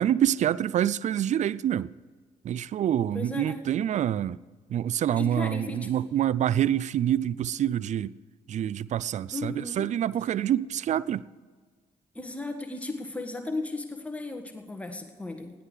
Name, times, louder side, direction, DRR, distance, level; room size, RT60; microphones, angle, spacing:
voice 1, 0.0-1.9 2.4-4.4 4.7-8.1 8.5-11.2, right 10 dB, 35° right, 0.4 m, -26 dB
voice 2, 3.1-3.6 5.2-6.1 9.3-9.9 12.1-15.5, left 2 dB, 5° left, 1.5 m, -35 dB
20.0 x 14.5 x 3.3 m
figure-of-eight pair, 40°, 20 cm